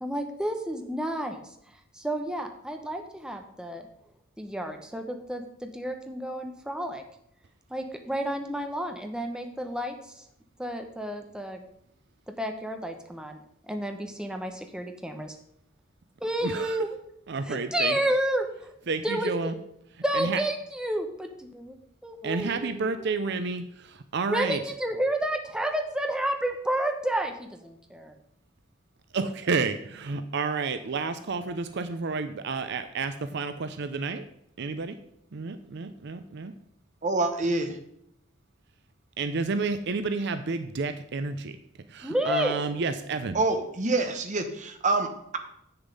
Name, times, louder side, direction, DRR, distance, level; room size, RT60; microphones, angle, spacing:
voice 1, 0.0-1.4 1.9-3.9 4.4-7.0 7.7-10.2 10.6-11.6 12.4-13.4 13.7-15.4 16.2-17.0 17.4-18.7 19.0-19.3 20.0-21.8 22.0-23.4 24.3-28.1 42.0-42.6, right 1 dB, 5° right, 4 dB, 0.8 m, -31 dB
voice 2, 16.4-16.8 17.3-18.0 18.9-19.5 20.1-20.4 22.2-24.6 29.1-34.3 34.6-35.0 35.3-36.5 39.2-41.5 41.9-43.4, right 4 dB, 60° right, 10 dB, 0.5 m, -30 dB
voice 3, 37.0-37.8 43.3-45.4, right 3 dB, 40° right, 7 dB, 1.1 m, -26 dB
8.1 x 6.9 x 5.3 m, 0.76 s
head